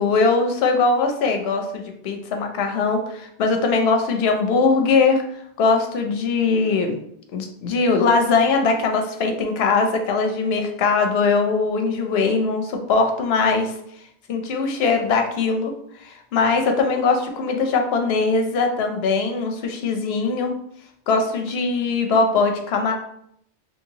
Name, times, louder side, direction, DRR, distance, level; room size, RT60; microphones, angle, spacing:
voice 1, 0.0-5.2 5.6-7.0 7.3-13.7 14.3-15.7 16.0-20.5 21.1-22.9, left 4 dB, 75° left, 4 dB, 0.8 m, -21 dB
3.1 x 2.8 x 2.7 m, 0.72 s
omnidirectional pair, 1.1 m